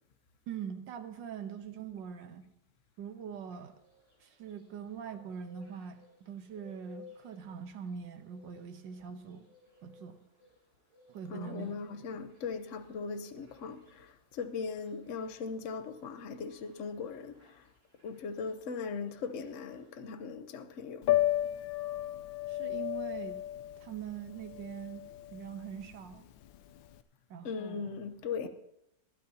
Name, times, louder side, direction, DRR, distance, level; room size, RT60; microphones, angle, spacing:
voice 1, 0.5-2.5 3.0-3.7 4.2-9.4 9.8-10.2 11.1-11.8 22.5-23.4 23.8-25.0 25.3-26.3 27.3-27.9 28.4-28.5, right 7 dB, 70° right, 1.7 m, -43 dB
sound 1, 3.5-20.0, left 4 dB, 40° right, 7.2 m, -61 dB
voice 2, 11.3-17.7 18.0-21.1 27.4-28.5, left 5 dB, 50° left, 1.0 m, -39 dB
Piano, 21.0-27.0, left 14 dB, 85° left, 1.4 m, -33 dB
20.5 x 12.5 x 2.8 m
omnidirectional pair, 2.1 m